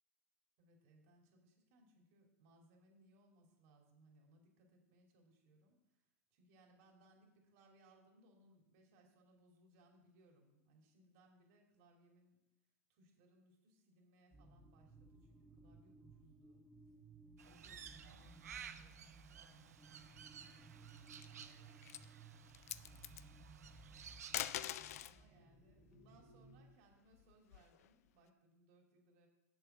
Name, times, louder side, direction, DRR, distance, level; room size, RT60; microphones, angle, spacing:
voice 1, 0.6-6.0 6.3-12.4 12.9-16.6 17.4-24.0 25.0-29.3, right 1 dB, 60° right, 1 dB, 3.0 m, -69 dB
sound 1, 14.3-26.6, right 3 dB, 5° right, 1.8 m, -60 dB
Crow, 17.4-24.7, right 8 dB, 80° right, 0.7 m, -56 dB
sound 2, 20.9-21.4 21.8-22.1 22.5-23.2 24.2-25.2 26.7-27.9, left 12 dB, 70° left, 0.4 m, -44 dB
8.0 x 7.1 x 6.9 m, 0.88 s
hypercardioid pair, 100°, 8 cm